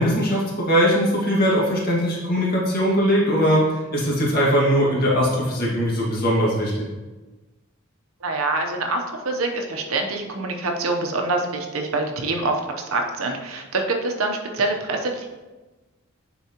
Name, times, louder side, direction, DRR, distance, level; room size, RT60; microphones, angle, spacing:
voice 1, 0.0-6.9, equal, 45° left, -5 dB, 1.9 m, -20 dB
voice 2, 8.2-15.3, right 2 dB, 85° right, 3 dB, 0.8 m, -25 dB
9.4 x 4.0 x 2.9 m, 1.2 s
head